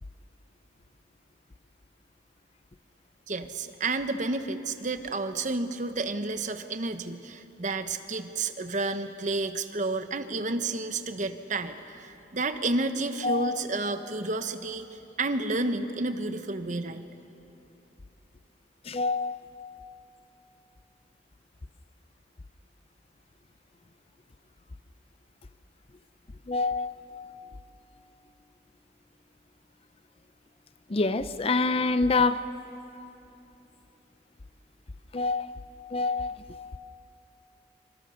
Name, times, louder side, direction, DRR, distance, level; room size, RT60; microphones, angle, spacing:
voice 1, 3.3-14.9 15.2-17.1, right 2 dB, 40° right, 9 dB, 1.0 m, -31 dB
voice 2, 13.2-13.6 18.9-19.6 26.5-27.2 30.9-32.4 35.1-35.5 35.9-36.6, left 3 dB, 30° left, 13 dB, 0.5 m, -27 dB
26.5 x 24.5 x 6.4 m, 2.9 s
head